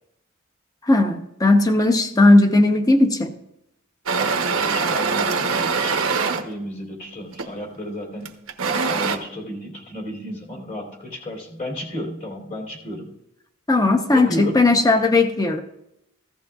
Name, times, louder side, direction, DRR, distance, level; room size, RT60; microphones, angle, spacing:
voice 1, 0.9-3.3 13.7-15.6, left 2 dB, 20° left, 6 dB, 0.8 m, -17 dB
sound 1, 4.1-6.5 7.3-7.6 8.3-9.2, right 5 dB, 90° right, 1.0 m, -23 dB
voice 2, 4.2-6.0 6.4-8.4 8.8-13.1 14.1-14.6, equal, 40° left, -1 dB, 3.1 m, -32 dB
15.5 x 14.0 x 2.4 m, 0.84 s
head